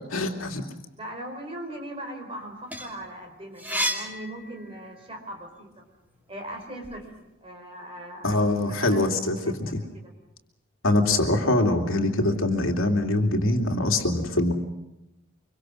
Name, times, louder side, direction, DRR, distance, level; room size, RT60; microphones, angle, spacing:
voice 1, 0.1-0.6 8.2-9.8 10.8-14.5, left 2 dB, 75° left, 3 dB, 2.7 m, -23 dB
voice 2, 1.0-5.9 6.3-7.1 7.4-8.5 8.8-9.0 9.4-10.1, right 1 dB, 25° right, 3 dB, 4.7 m, -39 dB
sound 1, 2.4-5.1 5.6-7.0, equal, 10° right, 2.6 m, -33 dB
25.0 x 24.0 x 6.3 m, 0.89 s
head